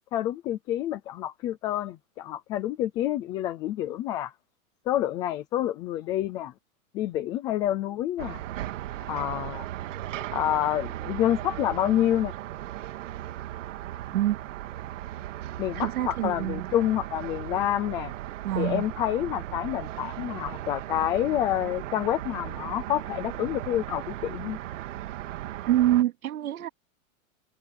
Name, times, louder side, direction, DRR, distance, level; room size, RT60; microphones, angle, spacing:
voice 1, 0.1-4.3 4.9-6.5 6.9-8.4 9.1-9.7 10.3-12.3 15.6-18.1 18.6-24.6, left 12 dB, 10° left, 0.4 m, -28 dB
sound 1, 8.2-26.0, right 13 dB, 60° right, 2.4 m, -37 dB
voice 2, 15.7-16.7 18.4-18.9 25.7-26.7, right 13 dB, 85° right, 2.6 m, -25 dB
supercardioid pair, 170°, 41 cm